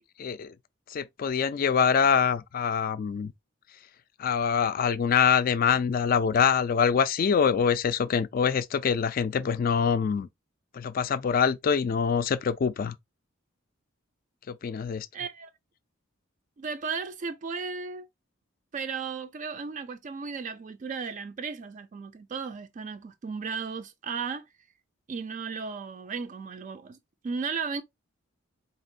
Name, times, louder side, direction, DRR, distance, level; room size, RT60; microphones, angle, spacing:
voice 1, 0.2-0.5 0.9-3.3 4.2-10.3 10.7-13.0 14.5-15.1, left 7 dB, 45° left, 0.3 m, -25 dB
voice 2, 15.1-15.5 16.6-18.1 18.7-24.4 25.1-27.0 27.2-27.8, right 5 dB, 40° right, 0.3 m, -35 dB
4.3 x 3.3 x 2.6 m
head